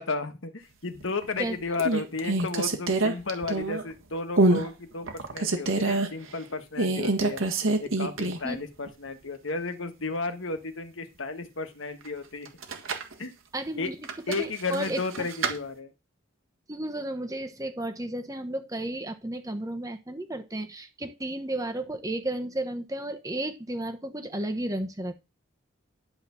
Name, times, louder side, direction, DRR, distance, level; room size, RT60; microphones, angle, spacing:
voice 1, 0.0-7.4 7.8-12.5 13.2-13.3 13.8-13.9 14.3-15.9, left 3 dB, 70° left, 8 dB, 1.4 m, -33 dB
sound 1, 1.0-1.4 1.8-3.9 4.4-4.7 5.1-6.1 6.8-8.6 8.9-9.0 12.5-13.1 14.0-15.6, right 2 dB, 75° right, 1.6 m, -26 dB
voice 2, 13.5-14.0 14.4-15.3 16.7-25.1, right 1 dB, 15° right, 6 dB, 1.1 m, -33 dB
11.5 x 4.3 x 6.9 m, 0.26 s
head